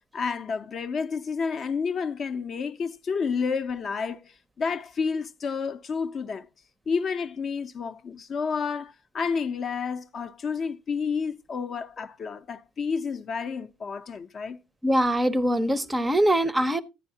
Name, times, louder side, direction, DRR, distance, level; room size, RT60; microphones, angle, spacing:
voice 1, 0.1-6.5 6.9-14.6, left 5 dB, 40° left, 0.5 m, -30 dB
voice 2, 14.8-16.8, right 1 dB, 10° right, 0.6 m, -23 dB
10.5 x 9.9 x 2.7 m
cardioid pair, 120°, 0 cm